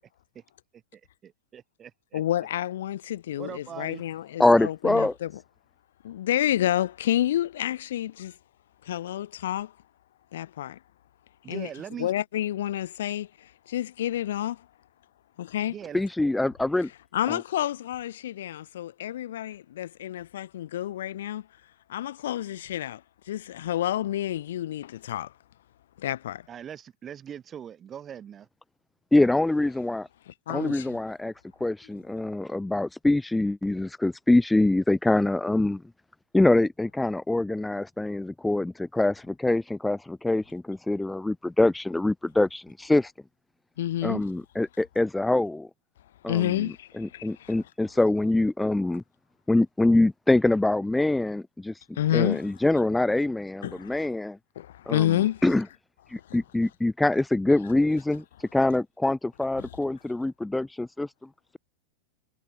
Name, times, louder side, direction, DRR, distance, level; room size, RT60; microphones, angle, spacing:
voice 1, 1.2-2.2 3.4-4.0 11.4-12.1 15.7-16.0 26.5-28.5, right 9 dB, 25° right, 6.2 m, -41 dB
voice 2, 2.1-5.3 6.0-8.4 8.8-9.7 10.3-10.8 11.5-11.7 12.0-14.7 15.4-15.7 17.1-21.5 21.9-25.3 26.0-26.5 30.3-31.0 43.8-44.2 46.3-47.6 52.0-52.5 53.6-54.1 54.6-55.5 56.3-56.4 59.6-59.7, left 12 dB, 60° left, 2.1 m, -29 dB
voice 3, 4.4-5.1 15.9-16.9 17.3-17.4 29.1-30.1 30.5-31.3 31.6-35.8 36.3-43.1 44.0-45.7 46.2-49.0 49.5-54.4 54.9-55.6 56.1-61.1, left 2 dB, 5° left, 1.5 m, -24 dB
figure-of-eight pair, 90°, 0 cm